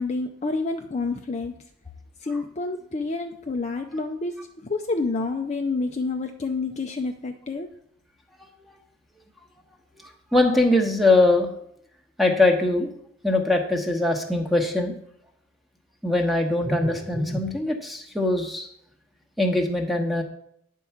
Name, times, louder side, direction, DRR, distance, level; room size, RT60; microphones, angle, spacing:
voice 1, 0.0-1.5 2.2-7.7, left 3 dB, 30° left, 4 dB, 0.5 m, -28 dB
voice 2, 10.3-11.5 12.2-12.9 13.2-14.9 16.0-18.7 19.4-20.2, left 2 dB, ahead, 3 dB, 1.0 m, -21 dB
9.8 x 4.6 x 7.0 m, 0.71 s
head